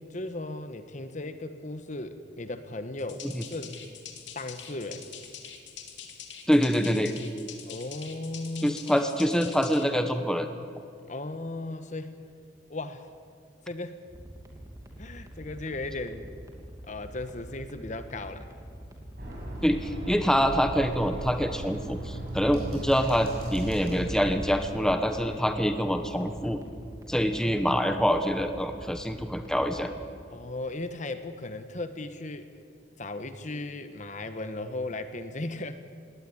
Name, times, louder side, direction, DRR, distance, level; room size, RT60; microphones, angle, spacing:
voice 1, 0.0-3.8 4.3-5.1 7.7-9.0 11.1-12.2 12.7-13.1 13.6-14.0 15.0-16.3 16.9-18.5 25.3-25.4 30.3-32.5 33.0-35.8, left 2 dB, 40° left, 10 dB, 1.2 m, -36 dB
sound 1, 3.0-9.8, left 8 dB, 80° left, 2.5 m, -44 dB
voice 2, 6.5-7.1 8.6-10.5 19.6-26.6 27.1-29.9, equal, 5° left, 7 dB, 1.1 m, -25 dB
sound 2, 14.1-30.0, right 1 dB, 20° right, 2.8 m, -46 dB
sound 3, 19.2-24.5, right 1 dB, 55° right, 7.2 m, -37 dB
19.5 x 18.0 x 9.8 m, 2.3 s
head